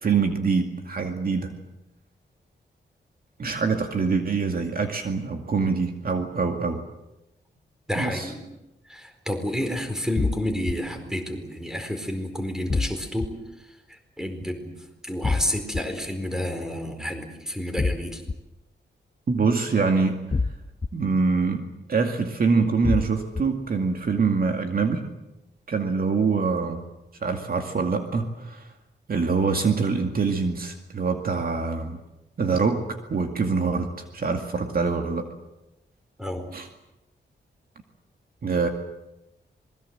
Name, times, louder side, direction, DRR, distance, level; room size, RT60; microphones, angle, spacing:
voice 1, 0.0-1.5 3.4-6.8 8.0-8.3 19.3-20.2 20.9-21.6 21.9-25.0 25.7-26.8 27.2-28.6 29.1-32.0 32.4-32.8 33.1-35.3 36.5-36.7 38.4-38.7, right 4 dB, 50° right, 4 dB, 2.3 m, -24 dB
voice 2, 7.9-8.4 8.9-13.3 13.9-14.7 15.0-18.2 36.2-36.5, left 1 dB, 5° right, 6 dB, 4.5 m, -30 dB
sound 1, 10.2-10.7 12.7-13.3 15.2-15.8 17.8-18.3 20.3-20.9 22.8-23.4, left 3 dB, 20° left, 1.0 m, -25 dB
26.5 x 21.5 x 7.8 m, 0.94 s
wide cardioid pair, 135°, 19 cm